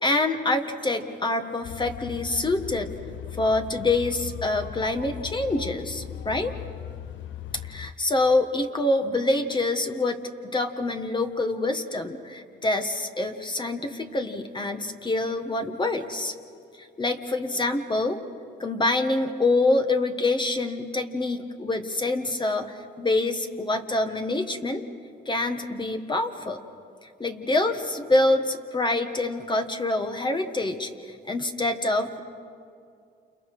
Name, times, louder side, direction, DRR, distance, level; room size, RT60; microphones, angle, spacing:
voice 1, 0.0-2.9 3.4-6.5 7.7-16.3 16.8-18.2 18.6-24.8 25.2-26.6 27.0-32.2, left 2 dB, 25° left, 5 dB, 1.7 m, -26 dB
sound 1, 1.6-7.9, left 10 dB, 75° left, 0.8 m, -38 dB
29.0 x 29.0 x 5.0 m, 2.4 s
cardioid pair, 90°, 20 cm